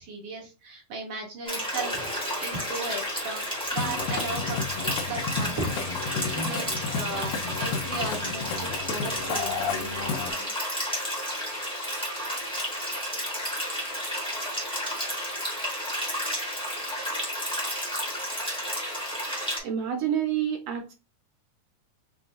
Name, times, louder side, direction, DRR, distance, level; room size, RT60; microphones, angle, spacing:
voice 1, 0.0-2.1 2.4-3.5 3.7-4.6 5.0-10.5, right 3 dB, 55° right, -1 dB, 2.1 m, -36 dB
sound 1, 1.4-19.6, equal, 5° left, 0.5 m, -32 dB
sound 2, 1.7-11.3, equal, 60° left, 0.9 m, -46 dB
Musical instrument, 3.6-10.3, left 5 dB, 80° left, 1.9 m, -32 dB
voice 2, 19.6-20.9, right 9 dB, 80° right, 3 dB, 1.6 m, -28 dB
6.0 x 2.3 x 2.6 m, 0.29 s
omnidirectional pair, 3.5 m